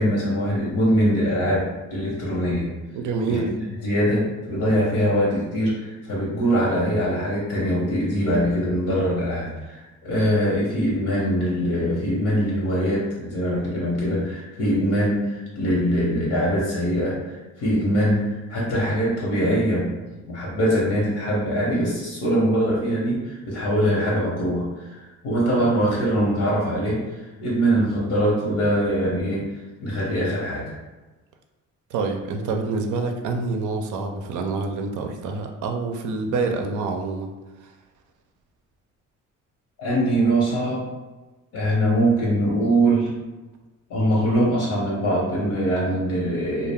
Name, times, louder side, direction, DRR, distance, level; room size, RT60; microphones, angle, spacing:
voice 1, 0.0-2.7 3.3-3.6 3.8-19.9 20.3-27.0 27.4-29.4 29.8-30.7 39.8-40.8 41.5-43.1 43.9-46.7, equal, 75° left, -5 dB, 0.9 m, -22 dB
voice 2, 2.9-3.5 31.9-37.3 37.6-37.7, right 4 dB, 75° right, 4 dB, 0.5 m, -27 dB
2.3 x 2.0 x 3.3 m, 1.2 s
cardioid pair, 95°, 31 cm